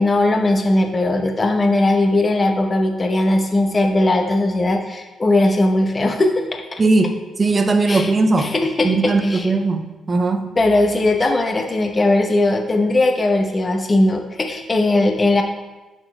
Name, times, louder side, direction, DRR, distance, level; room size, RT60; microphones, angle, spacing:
voice 1, 0.0-6.8 7.9-8.1 8.4-9.5 10.6-15.4, left 2 dB, 30° left, 4 dB, 0.8 m, -18 dB
voice 2, 6.8-8.5 8.8-10.5, right 3 dB, 30° right, 6 dB, 0.6 m, -18 dB
6.2 x 4.3 x 5.5 m, 1.2 s
cardioid pair, 90°, 0 cm